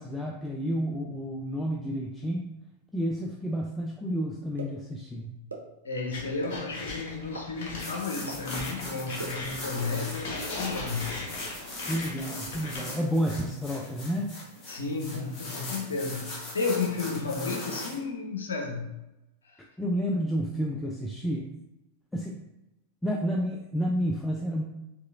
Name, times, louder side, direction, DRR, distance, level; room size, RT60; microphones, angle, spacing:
voice 1, 0.0-2.5 2.9-5.4 11.9-14.3 19.8-21.5 22.1-22.4 23.0-24.6, equal, 5° left, -1 dB, 0.4 m, -30 dB
sound 1, 4.6-4.7 5.5-5.6 6.4-6.5 7.3-7.4 8.3-8.4 9.2-9.3, right 4 dB, 80° right, 0.6 m, -36 dB
voice 2, 5.8-11.1 14.7-18.9, left 4 dB, 70° left, 1 dB, 0.8 m, -32 dB
sound 2, 6.1-12.8, left 2 dB, 50° left, 1.1 m, -39 dB
sound 3, 7.8-18.0, left 2 dB, 25° left, 1.2 m, -40 dB
4.7 x 3.0 x 2.5 m, 0.93 s
figure-of-eight pair, 90°, 0 cm